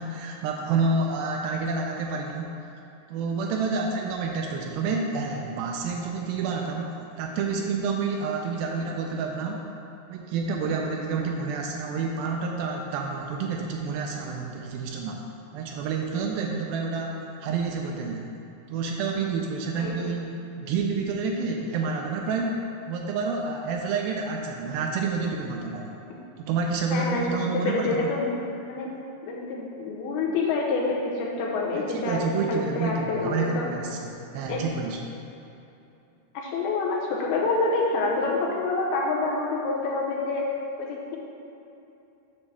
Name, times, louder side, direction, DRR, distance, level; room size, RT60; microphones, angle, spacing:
voice 1, 0.0-2.5 3.1-9.6 10.1-15.2 15.5-18.3 18.7-22.6 22.9-25.9 26.4-28.1 31.7-35.0, right 4 dB, 80° right, 1 dB, 2.2 m, -29 dB
voice 2, 19.7-20.1 26.9-28.3 28.7-28.9 29.2-33.7 34.5-34.6 36.3-40.5 40.8-41.2, left 3 dB, 85° left, -2 dB, 2.8 m, -27 dB
7.9 x 3.2 x 6.0 m, 2.8 s
omnidirectional pair, 4.5 m